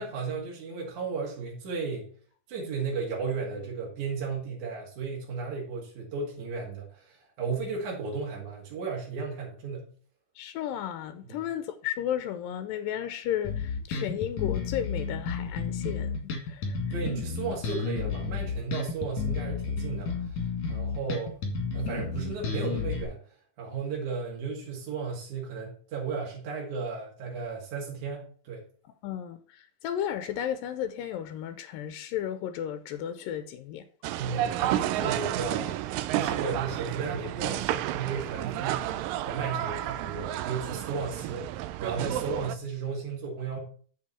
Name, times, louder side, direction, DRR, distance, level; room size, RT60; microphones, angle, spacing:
voice 1, 0.0-2.1 2.5-9.9 11.3-11.4 16.9-21.4 21.7-23.2 23.6-28.7 34.2-35.8 36.1-43.6, right 5 dB, 60° right, 3.4 m, -34 dB
voice 2, 10.4-16.8 22.0-22.2 29.0-33.9, left 10 dB, 85° left, 2.3 m, -34 dB
Bass guitar, 13.4-23.0, left 5 dB, 60° left, 3.1 m, -32 dB
sound 1, 34.0-42.5, right 13 dB, 85° right, 2.2 m, -31 dB
7.6 x 6.8 x 4.3 m
omnidirectional pair, 3.9 m